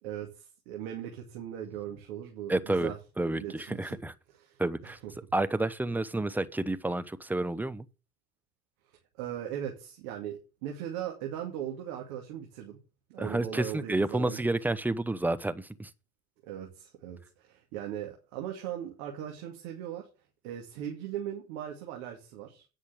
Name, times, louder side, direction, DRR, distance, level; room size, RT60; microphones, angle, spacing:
voice 1, 0.0-3.0 3.3-4.0 4.4-4.9 9.2-12.8 13.1-14.4 16.4-20.1 20.4-22.6, right 10 dB, 65° right, 2.5 m, -39 dB
voice 2, 2.5-2.9 3.2-4.1 4.6-5.0 5.3-7.8 13.2-15.9, right 2 dB, 5° right, 0.7 m, -30 dB
9.5 x 6.3 x 7.7 m
figure-of-eight pair, 65°, 47 cm